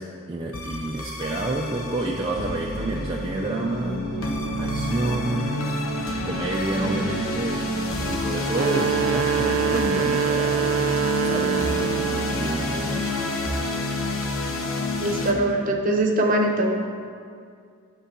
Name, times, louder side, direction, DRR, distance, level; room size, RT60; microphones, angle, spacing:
voice 1, 0.0-4.1 4.6-5.6 6.2-7.7 8.1-10.7 11.1-13.2, right 2 dB, 25° right, -2 dB, 0.4 m, -29 dB
sound 1, 0.5-15.3, left 1 dB, 75° left, 0.9 m, -28 dB
sound 2, 8.4-12.5, right 9 dB, 90° right, 0.3 m, -25 dB
voice 2, 15.0-16.7, right 1 dB, 40° right, 2 dB, 0.9 m, -22 dB
10.0 x 3.9 x 6.8 m, 2.3 s
head